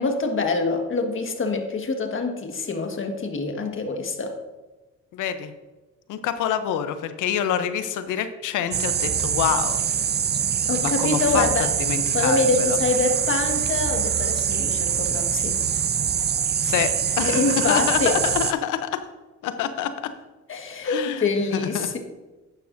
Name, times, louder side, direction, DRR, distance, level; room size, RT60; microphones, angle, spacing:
voice 1, 0.0-4.4 10.7-11.7 12.1-15.6 17.2-18.1 20.5-22.0, left 3 dB, 40° left, 4 dB, 1.6 m, -25 dB
voice 2, 5.1-5.5 6.1-9.8 10.8-11.5 11.9-12.8 16.6-19.0 19.4-19.9 20.8-21.9, left 9 dB, 85° left, 10 dB, 0.8 m, -26 dB
sound 1, 8.7-18.5, right 8 dB, 35° right, 0.5 m, -24 dB
11.5 x 9.4 x 2.6 m, 1.2 s
cardioid pair, 90°, 30 cm